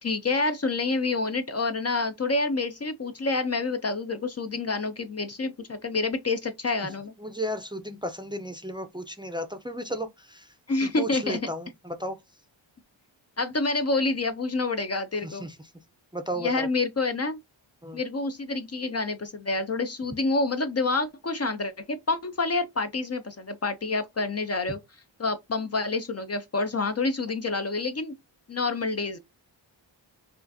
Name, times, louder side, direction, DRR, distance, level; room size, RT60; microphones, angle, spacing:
voice 1, 0.0-7.1 10.7-11.4 13.4-15.5 16.4-17.4 17.9-24.8 25.2-28.1 28.5-29.2, left 3 dB, 35° left, 0.6 m, -28 dB
voice 2, 7.2-10.5 10.8-12.2 15.2-15.6 16.1-16.7 17.8-18.0, equal, 10° right, 0.6 m, -34 dB
5.6 x 2.4 x 2.7 m
wide cardioid pair, 85°, 45 cm